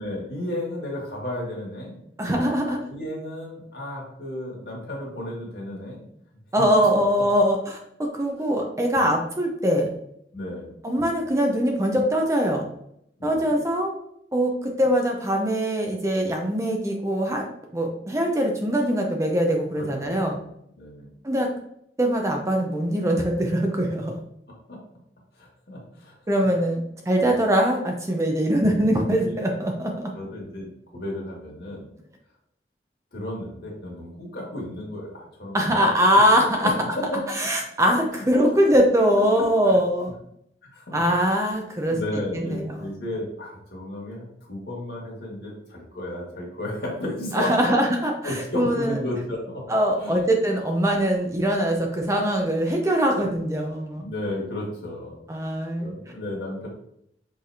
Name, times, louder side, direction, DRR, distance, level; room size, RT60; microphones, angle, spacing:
voice 1, 0.0-2.0 2.6-6.1 6.6-6.7 10.3-10.7 13.2-13.5 19.8-20.5 20.8-21.1 24.5-24.8 25.3-26.1 27.2-27.4 29.2-29.3 30.1-31.9 33.1-35.7 36.1-36.2 36.6-37.2 38.1-38.2 39.2-39.8 40.7-41.3 41.7-47.7 48.2-49.7 50.0-50.3 53.9-55.2 55.8-56.7, left 1 dB, 60° left, -3 dB, 1.7 m, -33 dB
voice 2, 2.2-2.8 6.5-9.9 10.8-12.6 13.2-13.9 14.3-17.5 17.7-20.4 21.2-21.5 22.0-24.2 26.3-30.1 35.5-36.7 37.4-40.2 40.9-42.0 42.3-42.9 47.3-49.0 49.7-54.0 55.3-55.9, equal, 15° right, 1 dB, 0.6 m, -22 dB
5.8 x 3.3 x 2.7 m, 0.73 s
head